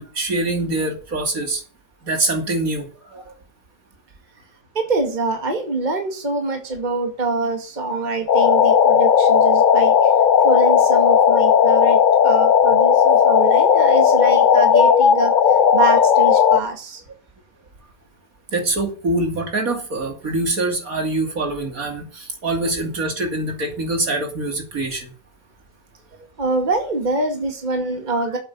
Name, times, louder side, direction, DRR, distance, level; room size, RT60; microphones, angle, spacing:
voice 1, 0.0-1.6 2.0-3.4 18.5-25.1 28.1-28.2, right 2 dB, 60° right, 4 dB, 3.0 m, -24 dB
voice 2, 4.7-9.9 10.4-15.3 15.7-17.0 26.4-28.4, right 3 dB, 30° right, 4 dB, 2.2 m, -24 dB
sound 1, 8.3-16.6, left 8 dB, 60° left, 0.5 m, -15 dB
8.8 x 8.1 x 8.4 m, 0.39 s
omnidirectional pair, 1.7 m